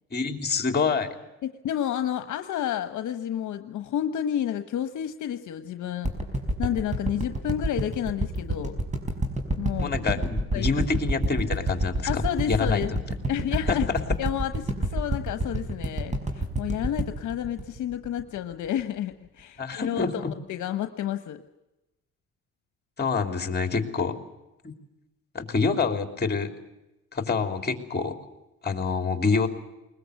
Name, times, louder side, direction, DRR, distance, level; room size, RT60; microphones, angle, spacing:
voice 1, 0.1-1.1 9.8-13.0 13.7-14.0 19.6-20.1 23.0-24.2 24.6-24.7 25.3-26.5 27.1-28.1 28.6-29.5, left 4 dB, 35° left, 7 dB, 3.3 m, -26 dB
voice 2, 1.6-6.1 6.6-8.8 9.6-9.9 10.5-10.7 12.1-12.9 13.3-13.9 14.2-20.2 20.5-21.4, left 10 dB, 75° left, 9 dB, 1.2 m, -30 dB
sound 1, 6.0-18.4 18.8-18.9, right 1 dB, 25° right, 5.3 m, -28 dB
21.0 x 21.0 x 8.2 m, 0.96 s
cardioid pair, 90°, 30 cm